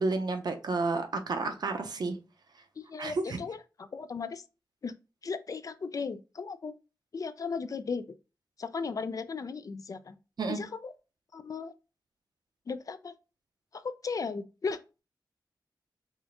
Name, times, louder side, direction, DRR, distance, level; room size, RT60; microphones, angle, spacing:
voice 1, 0.0-2.2 3.0-3.4 10.4-10.6, right 3 dB, 65° right, 0.6 m, -31 dB
voice 2, 2.8-4.4 4.8-4.9 5.2-6.7 7.1-8.0 8.6-10.2 10.5-10.9 11.3-11.7 12.7-13.1 13.7-14.8, left 5 dB, 50° left, 0.3 m, -36 dB
4.8 x 2.5 x 2.5 m
wide cardioid pair, 105°, 8 cm